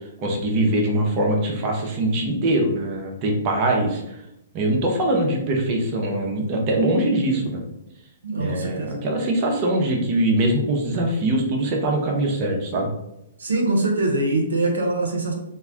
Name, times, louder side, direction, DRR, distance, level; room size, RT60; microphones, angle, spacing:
voice 1, 0.2-4.2 4.5-7.6 8.4-12.9, right 1 dB, 35° right, 0 dB, 0.6 m, -22 dB
voice 2, 8.2-9.1 13.4-15.3, right 2 dB, 80° right, 1 dB, 0.6 m, -23 dB
2.2 x 2.1 x 3.6 m, 0.84 s
hypercardioid pair, 125°, 0 cm